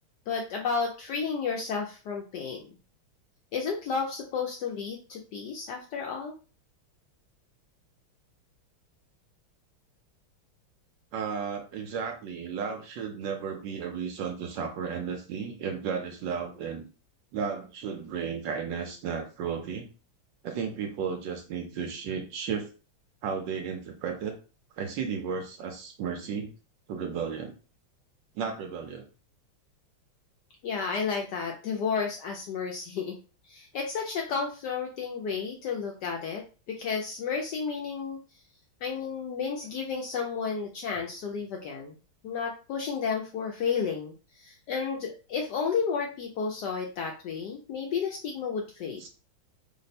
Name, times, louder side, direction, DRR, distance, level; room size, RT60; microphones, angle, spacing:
voice 1, 0.3-2.6 3.5-6.3 30.6-33.2 33.5-38.2 38.8-41.9 42.2-49.0, left 5 dB, 75° left, 0 dB, 1.0 m, -32 dB
voice 2, 11.1-16.8 17.3-19.9 20.4-22.7 23.2-24.4 24.8-26.5 26.9-27.5 28.3-29.1 49.0-49.1, right 6 dB, 70° right, 4 dB, 1.2 m, -34 dB
3.3 x 2.1 x 4.0 m, 0.34 s
omnidirectional pair, 2.3 m